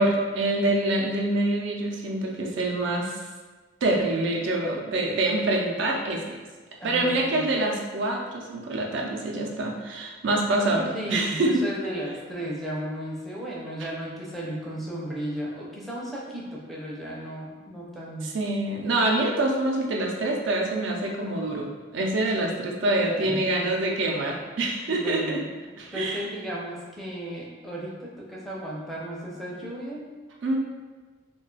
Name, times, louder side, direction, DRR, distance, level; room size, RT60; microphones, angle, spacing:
voice 1, 0.0-3.2 3.8-6.4 6.8-11.6 13.8-13.9 18.2-21.7 21.9-25.4 25.8-26.3 30.4-30.6, right 2 dB, 65° right, 0 dB, 0.4 m, -26 dB
voice 2, 6.8-7.4 10.9-18.3 22.3-22.5 23.2-23.7 24.9-25.5 25.9-30.1, equal, ahead, -5 dB, 0.4 m, -35 dB
2.4 x 2.2 x 3.8 m, 1.3 s
head